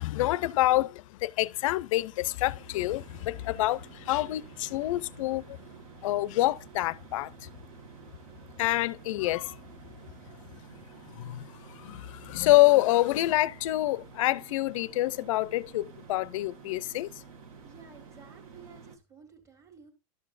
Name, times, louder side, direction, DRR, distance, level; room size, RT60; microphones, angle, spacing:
voice 1, 0.0-5.6 6.0-7.3 8.6-9.5 11.2-11.5 11.8-17.1, left 17 dB, 55° left, 0.5 m, -27 dB
sound 1, 2.0-19.0, right 5 dB, 60° right, 1.4 m, -50 dB
voice 2, 17.6-19.9, right 5 dB, 15° right, 1.7 m, -53 dB
12.5 x 6.2 x 2.5 m
supercardioid pair, 145°, 20 cm